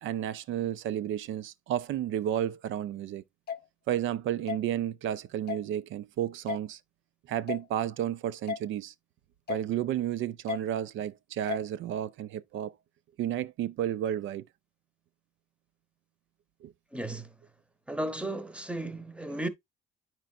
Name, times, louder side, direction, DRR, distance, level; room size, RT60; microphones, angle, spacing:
voice 1, 0.0-3.2 3.9-6.8 7.3-8.9 9.5-12.7 13.2-14.5 16.6-16.7, right 11 dB, 75° right, 0.4 m, -32 dB
sound 1, 3.5-3.6 4.5-4.6 5.5-5.6 6.5-6.6 7.5-7.7 8.5-8.6 9.5-9.7 10.5-10.6 11.5-11.7, left 7 dB, 55° left, 0.7 m, -33 dB
voice 2, 16.9-17.3 17.9-19.5, right 1 dB, 5° right, 0.8 m, -34 dB
9.1 x 4.5 x 2.4 m
cardioid pair, 90°, 20 cm